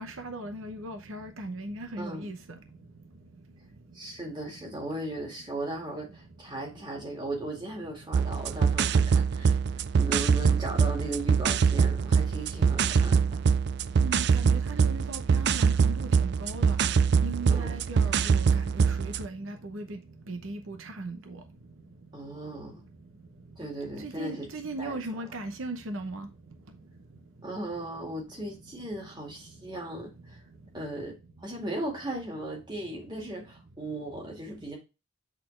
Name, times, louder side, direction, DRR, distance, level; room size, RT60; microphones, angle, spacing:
voice 1, 0.0-2.4 10.0-10.1 14.0-16.8 17.2-20.0 20.3-21.2 24.0-26.3, right 2 dB, 80° right, 0.8 m, -38 dB
voice 2, 2.0-2.3 3.9-9.6 9.9-13.4 17.5-17.7 22.1-22.8 23.6-24.5 24.8-25.2 27.4-30.4 30.7-31.1 31.4-34.8, right 1 dB, 20° right, 2.0 m, -37 dB
sound 1, 8.1-19.3, right 6 dB, 55° right, 0.3 m, -24 dB
8.2 x 4.1 x 3.2 m
head